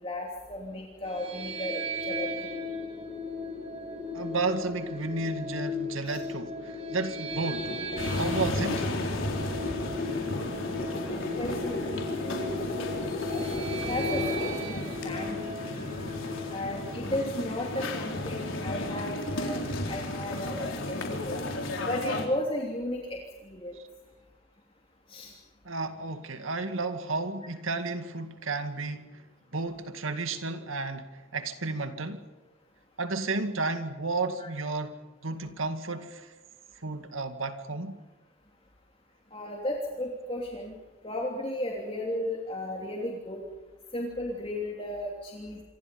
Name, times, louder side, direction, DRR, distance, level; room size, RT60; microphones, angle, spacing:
voice 1, 0.0-2.6 6.0-6.2 11.4-12.4 13.3-13.4 13.8-15.9 16.5-19.6 19.8-21.4 21.9-23.8 25.1-25.3 34.4-34.5 39.3-40.7 41.0-43.4 43.9-45.6, left 1 dB, 25° left, 3.0 m, -35 dB
sound 1, 1.0-17.2, left 2 dB, 30° right, 3.6 m, -36 dB
voice 2, 4.1-7.7 8.1-8.9 25.7-29.2 29.5-32.2 33.0-34.9 35.2-36.3 36.8-38.0, right 3 dB, 80° right, 2.2 m, -32 dB
sound 2, 7.3-15.0, left 1 dB, 45° left, 6.0 m, -36 dB
sound 3, 8.0-22.3, left 1 dB, 75° left, 4.4 m, -34 dB
27.5 x 25.0 x 5.4 m
head